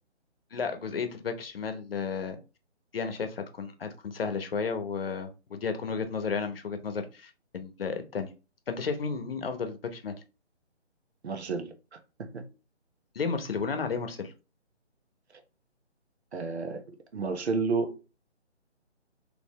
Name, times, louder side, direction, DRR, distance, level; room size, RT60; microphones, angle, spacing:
voice 1, 0.5-2.4 2.9-8.3 8.7-10.1 13.1-14.3, left 5 dB, 55° left, 1.0 m, -33 dB
voice 2, 11.2-12.4 16.3-16.8 17.1-18.0, right 4 dB, 65° right, 1.2 m, -31 dB
4.1 x 3.3 x 3.1 m
hypercardioid pair, 160°, 36 cm